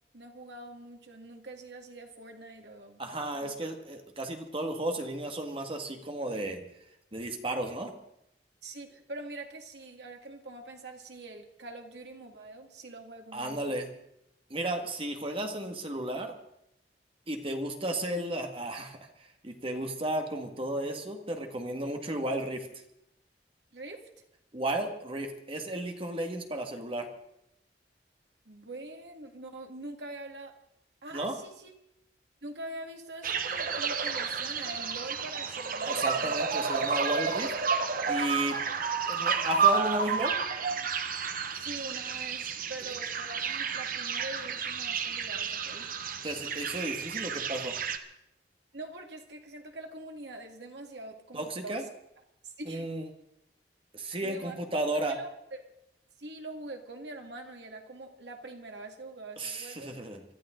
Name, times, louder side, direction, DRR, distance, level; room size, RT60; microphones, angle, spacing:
voice 1, 0.1-3.0 3.4-3.5 8.6-13.8 23.7-24.1 28.5-30.5 31.0-31.7 32.4-36.3 41.5-45.9 48.7-51.8 52.4-52.9 54.2-54.6 55.1-55.7 56.2-59.9, right 2 dB, 75° right, 3 dB, 2.1 m, -44 dB
voice 2, 3.0-6.7 7.1-7.9 13.3-13.9 14.5-16.3 17.3-22.7 24.5-27.1 31.1-31.4 35.8-37.5 38.1-38.6 39.0-40.3 46.2-47.8 51.3-51.8 52.6-53.1 53.9-55.1 59.4-60.3, right 1 dB, 30° right, 4 dB, 1.8 m, -33 dB
sound 1, 33.2-48.0, right 6 dB, 55° right, 1.1 m, -31 dB
24.5 x 13.0 x 3.9 m, 0.81 s
head